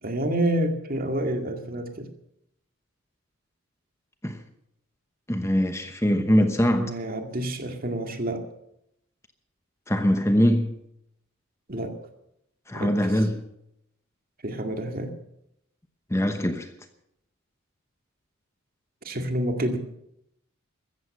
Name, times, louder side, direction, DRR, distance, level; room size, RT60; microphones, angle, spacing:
voice 1, 0.0-2.1 6.2-6.3 6.8-8.4 11.7-12.0 12.7-13.3 14.4-15.1 19.0-19.8, right 1 dB, 40° right, 2.1 m, -28 dB
voice 2, 5.3-6.9 9.9-10.8 12.7-13.4 16.1-16.7, equal, 15° left, 1.0 m, -22 dB
15.0 x 14.5 x 6.6 m
head